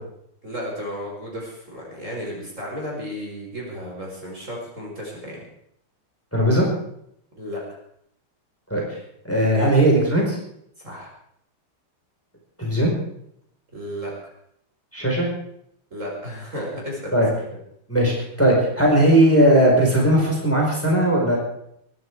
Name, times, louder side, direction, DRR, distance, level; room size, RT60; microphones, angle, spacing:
voice 1, 0.4-5.4 7.3-7.6 10.8-11.1 13.7-14.1 15.9-17.2, equal, 35° right, -3 dB, 5.3 m, -33 dB
voice 2, 6.3-6.7 8.7-8.8 9.2-10.4 12.6-12.9 14.9-15.3 17.1-17.3 17.9-21.4, right 1 dB, 5° left, -2 dB, 5.0 m, -18 dB
23.0 x 11.0 x 4.8 m, 0.72 s
omnidirectional pair, 2.3 m